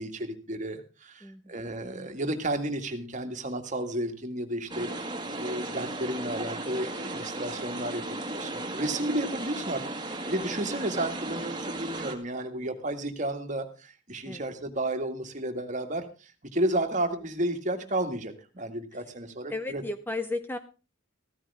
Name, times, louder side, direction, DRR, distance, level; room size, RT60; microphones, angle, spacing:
voice 1, 0.0-4.9 5.2-19.8, right 1 dB, 35° right, 6 dB, 1.9 m, -32 dB
voice 2, 1.2-1.5 14.2-14.4 19.5-20.6, left 2 dB, 10° left, 9 dB, 0.6 m, -34 dB
sound 1, 4.7-12.1, right 2 dB, 20° right, 2.0 m, -35 dB
15.5 x 14.0 x 3.5 m, 0.33 s
head